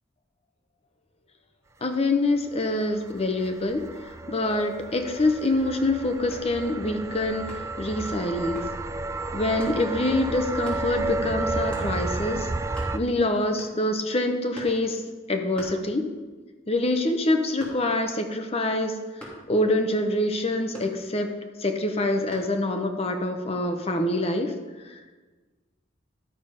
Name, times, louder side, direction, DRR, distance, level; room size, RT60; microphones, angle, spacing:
voice 1, 1.8-3.8 4.3-8.6 9.3-12.5 12.9-15.0 15.3-16.1 16.7-18.9 19.5-21.3 21.6-24.5 24.8-25.2, left 2 dB, 35° left, 5 dB, 0.9 m, -25 dB
sound 1, 2.4-13.0, right 2 dB, 15° right, 0.3 m, -32 dB
sound 2, 6.3-6.6 7.5-7.8 8.5-8.8 9.6-9.8 10.6-10.9 11.7-11.9 12.4-12.5 12.6-13.2 13.6-14.0 14.5-14.9 15.5-16.3 16.7-18.1 19.2-19.5 20.7-21.4 22.3-22.6, equal, 5° left, 2.8 m, -43 dB
12.0 x 6.8 x 5.5 m, 1.3 s
head